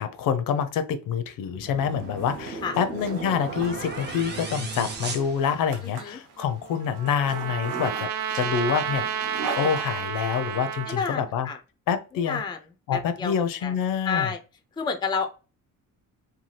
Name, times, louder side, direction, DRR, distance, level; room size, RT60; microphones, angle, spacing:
voice 1, 0.0-9.1 9.6-11.5 11.9-12.4 12.9-14.3, left 7 dB, 85° left, 0.5 m, -27 dB
sound 1, 1.5-6.1, right 3 dB, 30° right, 0.6 m, -36 dB
Zipper (clothing), 1.9-10.6, right 4 dB, 70° right, 1.0 m, -40 dB
voice 2, 5.8-6.2 10.9-11.6 12.2-12.6 12.9-13.3 13.6-13.7 14.0-14.4 14.8-15.3, left 5 dB, 15° left, 0.3 m, -29 dB
Trumpet, 6.4-11.0, right 9 dB, 90° right, 0.5 m, -31 dB
2.7 x 2.3 x 3.1 m
cardioid pair, 135°, 33 cm